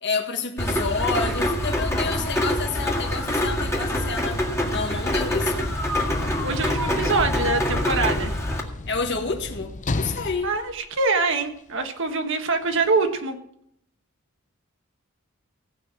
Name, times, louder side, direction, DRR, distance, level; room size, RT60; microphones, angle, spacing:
voice 1, 0.0-4.4 4.7-5.7 8.9-10.5, left 4 dB, 55° left, 4 dB, 1.6 m, -29 dB
Rain, 0.6-8.6, left 1 dB, 15° left, 1.9 m, -25 dB
Sliding door / Slam, 6.4-11.8 12.7-12.8, left 2 dB, 35° left, 0.7 m, -34 dB
voice 2, 6.4-8.3 10.4-13.4, right 3 dB, 60° right, 6 dB, 1.3 m, -24 dB
16.5 x 5.7 x 7.5 m, 0.73 s
head